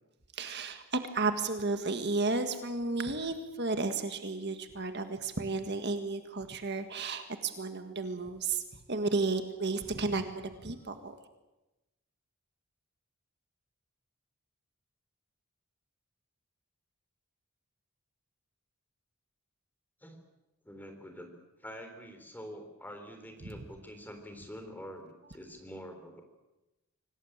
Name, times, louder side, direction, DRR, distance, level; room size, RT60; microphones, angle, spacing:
voice 1, 0.3-8.6 8.9-11.1 23.4-23.5, right 3 dB, 50° right, 7 dB, 1.7 m, -33 dB
voice 2, 20.6-21.3 21.6-26.2, equal, 10° left, 5 dB, 3.6 m, -46 dB
25.5 x 18.5 x 8.8 m, 1.0 s
head